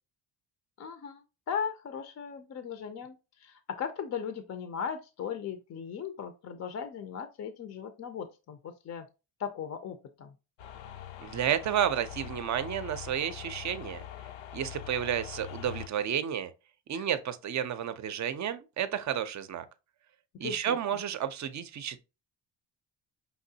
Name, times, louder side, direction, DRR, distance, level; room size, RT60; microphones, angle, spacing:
voice 1, 0.8-9.1 9.4-10.3 16.9-17.1 20.4-21.0, left 7 dB, 40° left, 0.5 m, -38 dB
sound 1, 10.6-15.9, left 10 dB, 85° left, 0.7 m, -43 dB
voice 2, 11.2-14.0 14.5-16.5 16.9-19.6 20.4-22.0, right 9 dB, 40° right, 0.5 m, -31 dB
5.7 x 3.0 x 2.7 m
cardioid pair, 145°, 43 cm